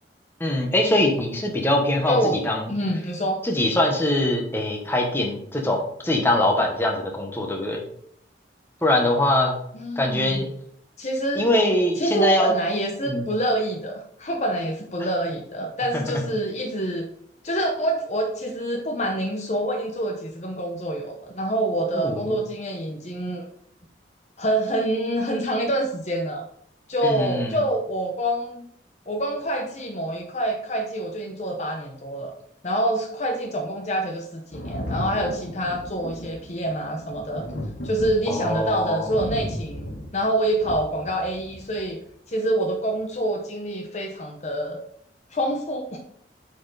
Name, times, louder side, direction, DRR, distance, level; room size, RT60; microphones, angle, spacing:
voice 1, 0.4-2.7 3.4-7.8 8.8-9.6 10.0-10.5 11.3-12.5 13.1-13.2 15.9-16.2 21.9-22.4 27.0-27.6 38.3-39.2, left 1 dB, 10° left, 1 dB, 1.1 m, -23 dB
voice 2, 2.7-3.4 9.7-10.5 11.0-11.5 12.0-17.1 17.4-23.5 24.4-26.4 26.9-28.7 29.1-32.3 32.6-37.4 37.8-39.9 40.1-42.0 42.3-44.8 45.3-46.0, right 1 dB, 40° left, 2 dB, 0.8 m, -26 dB
Thunder, 34.5-41.9 43.0-43.1, left 1 dB, 90° left, 1.8 m, -35 dB
8.3 x 4.4 x 4.0 m, 0.67 s
head